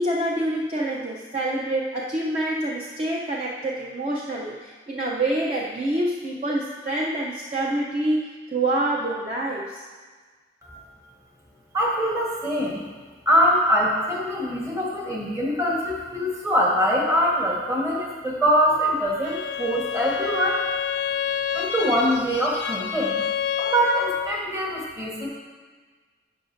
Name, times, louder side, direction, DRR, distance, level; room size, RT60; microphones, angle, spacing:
voice 1, 0.0-9.8, right 1 dB, 35° right, -4 dB, 0.5 m, -26 dB
voice 2, 11.7-12.9 13.3-20.6 21.5-23.2 23.6-25.3, equal, 15° right, -3 dB, 1.3 m, -23 dB
Bowed string instrument, 19.2-24.4, left 8 dB, 75° left, 0.4 m, -28 dB
11.0 x 5.9 x 2.6 m, 1.5 s
head